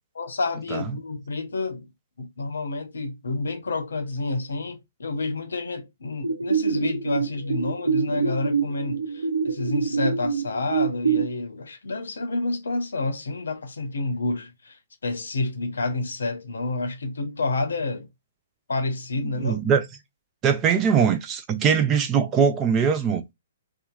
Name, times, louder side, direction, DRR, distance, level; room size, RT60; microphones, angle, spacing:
voice 1, 0.2-1.9 2.2-18.1 18.7-19.6, left 3 dB, 70° left, 0.7 m, -29 dB
sound 1, 6.2-11.2, right 5 dB, 85° right, 0.5 m, -25 dB
voice 2, 19.4-19.9 20.4-23.2, right 7 dB, 25° right, 0.5 m, -21 dB
2.8 x 2.4 x 2.3 m
figure-of-eight pair, 125°, 0 cm